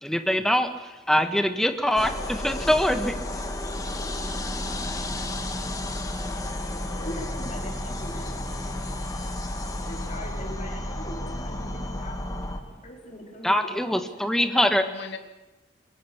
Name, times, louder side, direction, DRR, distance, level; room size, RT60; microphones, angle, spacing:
voice 1, 0.0-3.1 13.4-14.8, equal, ahead, 7 dB, 1.5 m, -23 dB
sound 1, 2.0-12.6, left 1 dB, 20° left, 2.2 m, -32 dB
voice 2, 5.2-5.9 14.5-15.2, left 4 dB, 65° left, 6 dB, 2.6 m, -42 dB
voice 3, 6.9-8.3 9.9-12.4 12.8-14.2, left 1 dB, 40° left, 1 dB, 4.9 m, -40 dB
24.0 x 23.0 x 7.3 m, 1.1 s
head